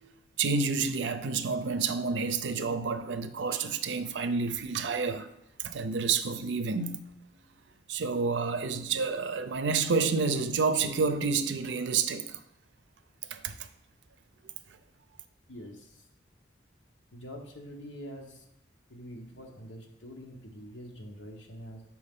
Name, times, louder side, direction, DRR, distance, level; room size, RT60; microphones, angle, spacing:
voice 1, 0.0-5.3 5.6-7.0 7.9-12.4 13.3-13.5, right 4 dB, 80° right, 0.5 m, -29 dB
voice 2, 15.5-16.1 17.1-18.5 18.9-21.8, equal, 90° left, 1.0 m, -45 dB
6.5 x 4.6 x 3.6 m
head